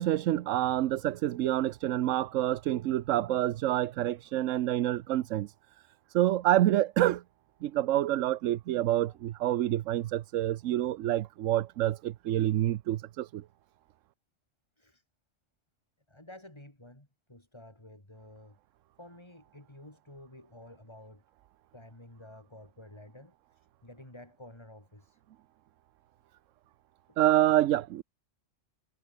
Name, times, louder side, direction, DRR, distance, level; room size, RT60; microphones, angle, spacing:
voice 1, 0.0-5.5 6.1-7.2 7.6-13.4 27.2-28.0, right 13 dB, 80° right, 1.0 m, -27 dB
voice 2, 16.1-18.6 19.0-21.2 21.7-25.2, left 1 dB, 20° left, 3.8 m, -51 dB
omnidirectional pair, 1.3 m